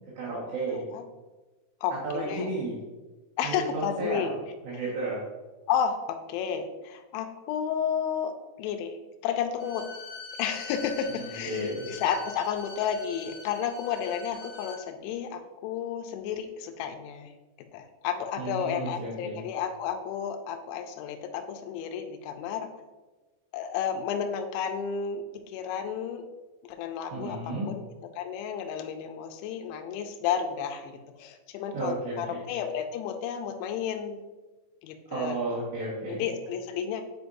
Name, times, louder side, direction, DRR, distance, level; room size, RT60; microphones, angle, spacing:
voice 1, 0.2-0.8 2.0-2.8 3.4-4.3 4.6-5.2 11.1-11.9 18.4-19.4 27.1-27.7 31.7-32.4 35.1-36.3, right 2 dB, 65° right, -8 dB, 3.4 m, -33 dB
voice 2, 0.7-1.0 1.8-2.5 3.4-4.4 5.7-8.3 8.6-9.0 9.2-9.8 10.4-17.3 17.7-22.7 23.5-26.2 26.6-27.9 28.2-34.2 34.8-35.4 36.1-37.0, left 8 dB, 85° left, 5 dB, 2.7 m, -32 dB
Bowed string instrument, 9.6-14.8, left 4 dB, 40° left, 2.1 m, -44 dB
9.3 x 5.1 x 2.6 m, 1.2 s
omnidirectional pair, 5.9 m